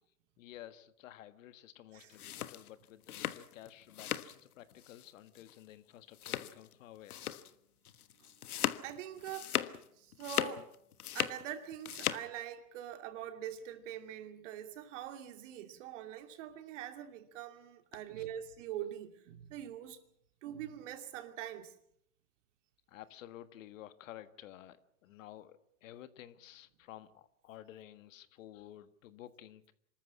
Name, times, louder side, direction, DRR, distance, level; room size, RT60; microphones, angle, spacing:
voice 1, 0.4-7.2 17.9-18.2 22.9-24.8 25.0-29.7, left 12 dB, 60° left, 1.6 m, -52 dB
sound 1, 2.0-4.4 4.7-5.1 5.4-5.5 6.1-6.7 7.1-7.5 7.9-9.8 10.1-11.4 11.7-12.3, left 11 dB, 75° left, 1.4 m, -37 dB
voice 2, 8.8-10.7 11.1-20.0 20.4-21.8, right 10 dB, 55° right, 2.8 m, -44 dB
26.0 x 14.0 x 8.5 m
hypercardioid pair, 130°, 44 cm